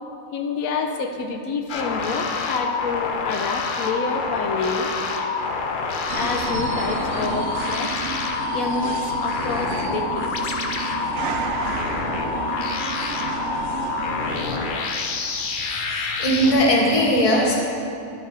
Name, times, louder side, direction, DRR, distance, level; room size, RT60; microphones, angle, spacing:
voice 1, 0.3-4.9 6.1-8.0 8.5-10.3, left 4 dB, 80° left, 5 dB, 1.0 m, -28 dB
sound 1, 1.7-16.5, left 4 dB, 55° left, 0.6 m, -27 dB
sound 2, 6.1-14.7, right 6 dB, 65° right, 0.8 m, -32 dB
voice 2, 15.8-17.5, equal, 25° left, -2 dB, 1.1 m, -19 dB
11.0 x 5.1 x 4.5 m, 2.6 s
omnidirectional pair, 1.5 m